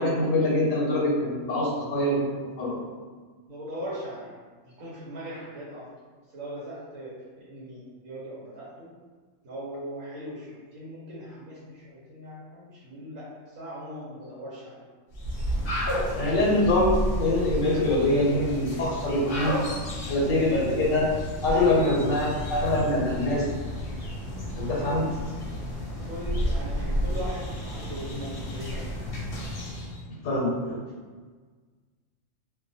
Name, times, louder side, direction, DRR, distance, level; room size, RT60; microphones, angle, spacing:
voice 1, 0.0-2.3 2.6-2.8 3.8-3.9 16.1-19.6 20.1-21.1 21.4-23.5 24.6-25.1 30.1-30.8, left 1 dB, 90° left, -4 dB, 1.0 m, -24 dB
voice 2, 3.5-4.3 4.6-5.9 6.3-8.9 9.4-14.8 26.0-29.1, right 1 dB, 85° right, -8 dB, 1.1 m, -39 dB
sound 1, 15.1-30.0, equal, 55° left, 0.8 m, -32 dB
2.4 x 2.2 x 2.6 m, 1.5 s
omnidirectional pair, 1.3 m